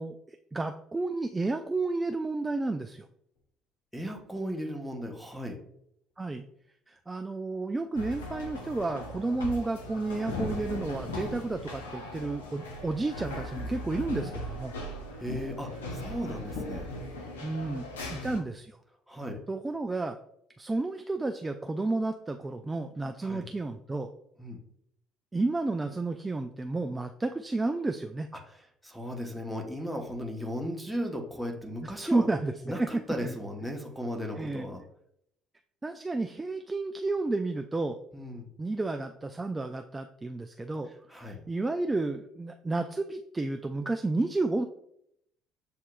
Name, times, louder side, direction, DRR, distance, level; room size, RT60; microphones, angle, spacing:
voice 1, 0.0-3.1 6.2-6.5 6.9-14.7 17.4-18.8 19.5-20.2 20.6-24.1 25.3-28.3 31.8-32.9 33.2-33.4 34.3-34.7 35.8-38.0 38.6-40.9 41.2-44.7, right 2 dB, 20° right, 6 dB, 0.3 m, -31 dB
sound 1, 3.4-3.5 4.8-4.9 7.5-7.6 10.3-14.8 15.3-17.7, left 4 dB, 60° left, 0.9 m, -44 dB
voice 2, 3.9-5.6 15.2-16.9 18.1-18.3 19.1-19.4 23.2-23.4 24.4-24.6 28.8-32.3 32.7-34.8 38.1-38.5 41.1-41.4, equal, ahead, 2 dB, 1.0 m, -36 dB
sound 2, 7.9-18.4, left 1 dB, 80° left, 0.5 m, -39 dB
7.4 x 2.8 x 2.2 m, 0.73 s
figure-of-eight pair, 55°, 0 cm